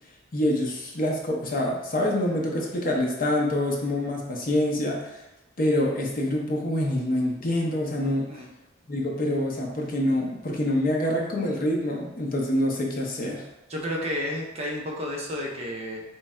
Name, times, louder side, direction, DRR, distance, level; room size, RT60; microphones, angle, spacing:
voice 1, 0.3-5.1 5.6-8.3 8.9-13.4, left 1 dB, 45° left, -1 dB, 0.6 m, -26 dB
voice 2, 13.7-16.0, left 1 dB, 30° right, -2 dB, 0.6 m, -31 dB
3.1 x 2.3 x 4.2 m, 0.97 s
head